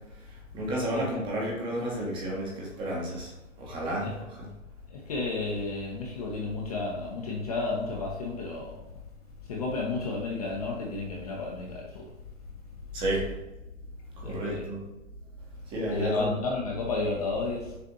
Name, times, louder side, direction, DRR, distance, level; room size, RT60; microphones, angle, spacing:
voice 1, 0.5-3.3 3.6-4.1 12.9-13.3 14.2-14.8 15.7-16.3, right 1 dB, 15° right, -2 dB, 0.6 m, -31 dB
voice 2, 4.9-9.0 9.4-12.1 14.2-14.7 15.8-17.8, left 3 dB, 30° left, -1 dB, 0.4 m, -32 dB
6.5 x 2.4 x 2.6 m, 0.96 s
hypercardioid pair, 130°, 41 cm